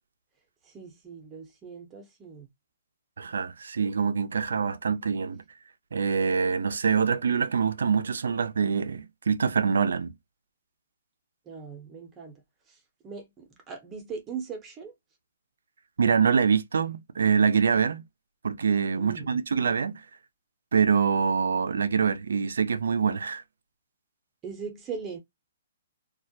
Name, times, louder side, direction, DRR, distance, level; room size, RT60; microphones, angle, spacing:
voice 1, 0.6-2.5 11.5-14.9 19.0-19.4 24.4-25.2, right 6 dB, 20° right, 0.6 m, -40 dB
voice 2, 3.2-5.4 5.9-10.1 16.0-18.0 18.4-20.0 20.7-23.4, right 6 dB, 80° right, 0.3 m, -25 dB
2.2 x 2.0 x 2.7 m
hypercardioid pair, 140°, 0 cm